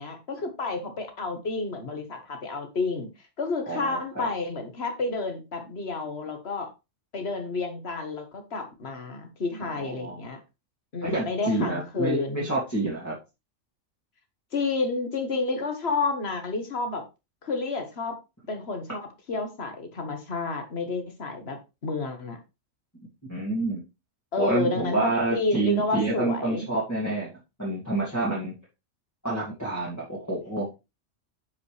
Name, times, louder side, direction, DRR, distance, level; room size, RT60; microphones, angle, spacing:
voice 1, 0.0-3.1 3.4-6.7 7.1-10.4 10.9-12.5 14.5-17.0 17.4-18.2 18.5-21.6 21.8-22.4 24.3-26.7, left 3 dB, 55° left, 1.7 m, -30 dB
voice 2, 3.7-4.3 10.0-10.2 11.0-13.1 23.3-23.8 24.4-27.3 27.6-28.5 29.2-30.7, right 2 dB, 15° left, 2.4 m, -28 dB
9.1 x 5.5 x 3.3 m
omnidirectional pair, 1.3 m